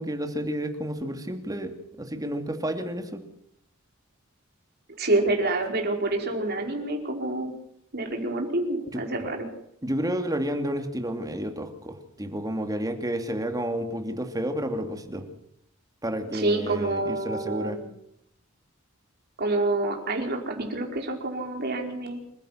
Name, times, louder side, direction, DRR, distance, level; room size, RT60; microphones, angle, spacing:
voice 1, 0.0-1.7 2.0-3.2 8.9-9.0 9.8-15.2 16.0-17.8, equal, 15° right, 5 dB, 2.8 m, -30 dB
voice 2, 5.0-7.5 7.9-9.5 16.3-17.8 19.4-22.2, right 2 dB, 50° right, 2 dB, 5.0 m, -27 dB
28.0 x 15.5 x 5.9 m, 0.73 s
head